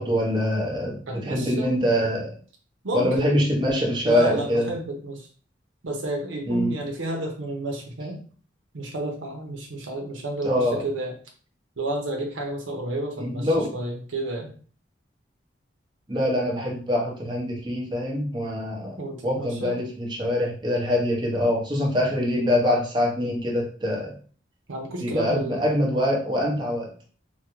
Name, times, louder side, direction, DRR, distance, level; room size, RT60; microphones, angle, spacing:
voice 1, 0.0-2.3 2.9-4.7 6.5-6.8 10.4-10.8 13.2-13.7 16.1-24.2 25.0-26.9, left 1 dB, 25° right, -3 dB, 0.8 m, -24 dB
voice 2, 1.1-1.7 2.8-3.3 4.0-5.3 5.8-8.2 8.7-11.1 11.8-14.5 19.0-19.7 24.7-25.6, right 1 dB, 85° right, 1 dB, 0.8 m, -31 dB
3.5 x 2.2 x 3.1 m, 0.43 s
head